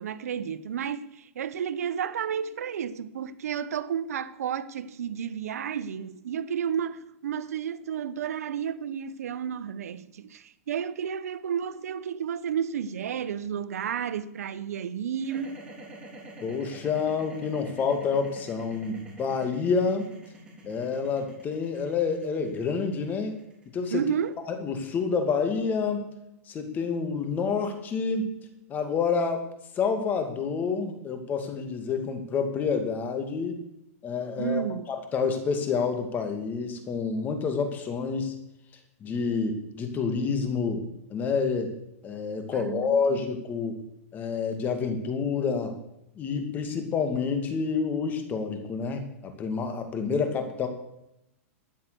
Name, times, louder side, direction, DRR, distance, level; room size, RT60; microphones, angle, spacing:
voice 1, 0.0-15.6 23.9-24.3 34.4-34.9 42.5-43.2, right 8 dB, 85° right, 1.0 m, -32 dB
sound 1, 15.2-25.4, right 1 dB, 10° right, 4.2 m, -47 dB
voice 2, 16.4-20.1 20.6-23.4 23.7-24.0 24.5-26.1 26.5-28.4 28.7-29.4 29.8-33.6 34.0-34.6 34.9-38.3 39.0-40.8 41.1-41.7 42.0-43.8 44.1-45.7 46.2-50.7, left 5 dB, 20° left, 2.4 m, -28 dB
13.0 x 9.5 x 7.0 m
hypercardioid pair, 150°, 8 cm